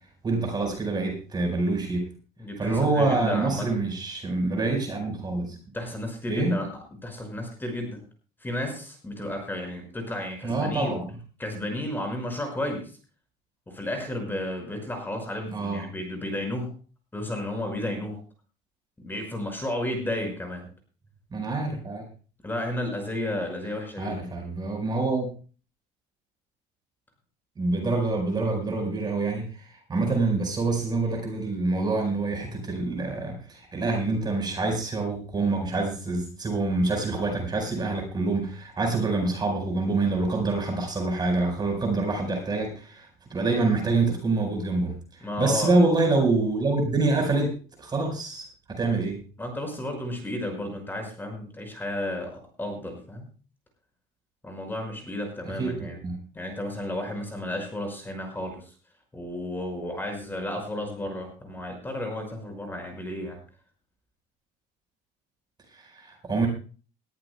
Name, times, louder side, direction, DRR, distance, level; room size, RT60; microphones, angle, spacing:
voice 1, 0.2-2.1 2.6-5.6 6.3-6.5 10.4-11.1 15.5-15.9 21.3-22.0 24.0-25.3 27.6-45.0 45.4-49.2 55.6-56.2 65.7-66.5, right 3 dB, 25° right, 2 dB, 4.6 m, -26 dB
voice 2, 2.4-3.7 5.7-6.7 7.0-8.0 8.4-10.9 11.4-12.8 13.7-16.7 17.1-18.2 19.0-20.6 22.4-24.2 45.2-45.9 49.4-53.3 54.4-56.0 56.3-58.6 59.1-63.4, left 1 dB, 10° left, 3 dB, 5.5 m, -32 dB
20.5 x 14.0 x 2.2 m, 0.38 s
cardioid pair, 150°, 18 cm